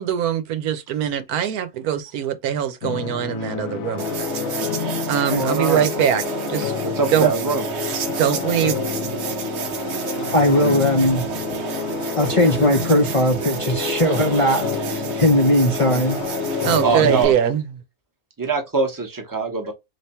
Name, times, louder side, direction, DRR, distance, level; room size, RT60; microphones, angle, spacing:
voice 1, 0.0-4.1 5.1-6.2 6.5-6.7 7.1-7.3 8.2-8.8 16.6-17.6, right 9 dB, 75° right, 1.2 m, -22 dB
sound 1, 2.8-17.3, left 11 dB, 70° left, 0.9 m, -29 dB
sound 2, 4.0-17.2, right 6 dB, 60° right, 0.8 m, -29 dB
voice 2, 5.4-5.9 6.8-7.7 11.6-11.7 16.8-17.3 18.4-19.7, right 4 dB, 15° right, 0.8 m, -23 dB
voice 3, 10.3-11.2 12.2-16.2 17.0-17.1, left 1 dB, 30° left, 0.6 m, -19 dB
3.4 x 2.9 x 4.2 m
omnidirectional pair, 1.6 m